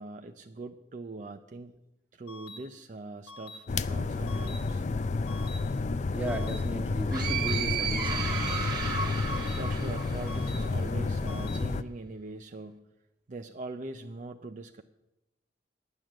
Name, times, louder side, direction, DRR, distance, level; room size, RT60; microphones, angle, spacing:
voice 1, 0.0-1.8 2.1-4.8 9.5-12.9 13.3-14.8, right 3 dB, 45° right, 6 dB, 0.5 m, -42 dB
sound 1, 2.3-2.6 3.3-3.6 4.3-4.6 5.3-5.6 6.3-6.6 7.3-7.6 8.3-8.6 9.3-9.6 10.3-10.6 11.3-11.6, left 2 dB, 75° left, 2.0 m, -46 dB
sound 2, 3.7-11.8, left 3 dB, 40° left, 0.4 m, -30 dB
voice 2, 6.1-8.7, right 1 dB, 10° right, 3 dB, 1.3 m, -36 dB
sound 3, 7.1-10.8, right 6 dB, 25° right, 1.6 m, -34 dB
10.5 x 9.4 x 7.5 m, 0.90 s
head